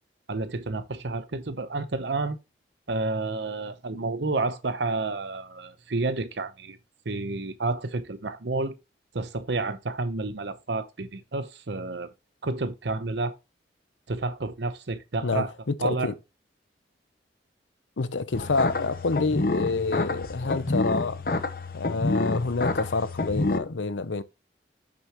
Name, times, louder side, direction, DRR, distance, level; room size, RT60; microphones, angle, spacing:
voice 1, 0.3-2.4 2.9-6.8 7.0-8.8 9.1-12.1 12.4-13.4 14.1-15.5 15.8-16.1, right 3 dB, 75° right, 0.8 m, -30 dB
voice 2, 15.8-16.1 18.0-21.2 21.7-24.2, left 3 dB, 90° left, 0.7 m, -27 dB
sound 1, 18.3-23.6, left 2 dB, 50° left, 0.8 m, -28 dB
7.8 x 6.8 x 2.9 m
head